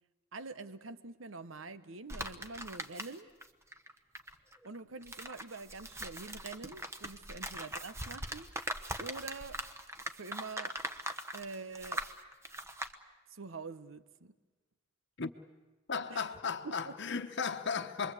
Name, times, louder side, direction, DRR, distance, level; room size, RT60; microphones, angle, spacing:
voice 1, 0.3-3.3 4.6-8.5 9.0-9.6 10.1-10.8 11.3-12.0 13.3-14.4 16.1-16.2 16.6-16.9, right 3 dB, 85° right, 1.1 m, -45 dB
sound 1, 2.1-3.5 3.7-12.9, right 1 dB, 15° right, 1.1 m, -41 dB
voice 2, 15.9-18.1, left 5 dB, 60° left, 1.2 m, -35 dB
28.5 x 22.0 x 8.4 m
head